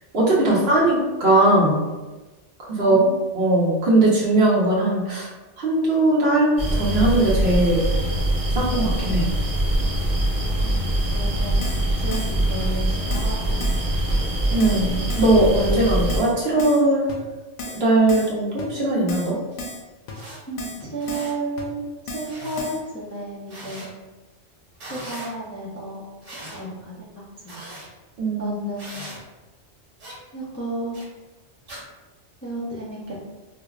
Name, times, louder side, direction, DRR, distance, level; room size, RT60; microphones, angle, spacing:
voice 1, 0.1-1.8 2.7-3.0 3.3-5.3 5.6-7.8 8.5-9.3 14.5-17.1 17.8-19.4 28.2-28.5, right 2 dB, 60° right, -5 dB, 1.0 m, -19 dB
voice 2, 2.8-3.2 10.4-13.8 14.1-14.2 20.5-23.9 24.9-26.1 26.5-27.8 28.4-29.0 30.3-31.0 32.4-33.3, right 2 dB, 20° left, -7 dB, 0.4 m, -33 dB
sound 1, 6.6-16.2, right 1 dB, 40° right, 0.5 m, -23 dB
Keyboard (musical), 11.1-11.2 11.6-11.8 12.1-12.3 12.6-12.7 13.1-13.3 13.6-13.8 14.1-14.2 14.6-14.8 15.1-15.3 15.6-15.7 16.1-16.3 16.6-16.8 17.1-17.2 17.6-17.8 18.1-18.3 18.6-18.7 19.1-19.3 19.6-19.8 20.1-20.2 20.6-20.8 21.1-21.3 21.6-21.7 22.1-22.3 22.6-22.8, left 2 dB, 80° left, 1.0 m, -34 dB
sound 2, 19.5-19.6 20.1-20.4 20.9-21.3 22.3-22.7 23.5-23.9 24.7-25.3 26.2-26.6 27.5-27.9 28.8-29.2 30.0-30.2 30.9-31.1 31.7-31.8, right 1 dB, 85° right, 1.4 m, -39 dB
4.9 x 2.0 x 2.4 m, 1.2 s
omnidirectional pair, 1.2 m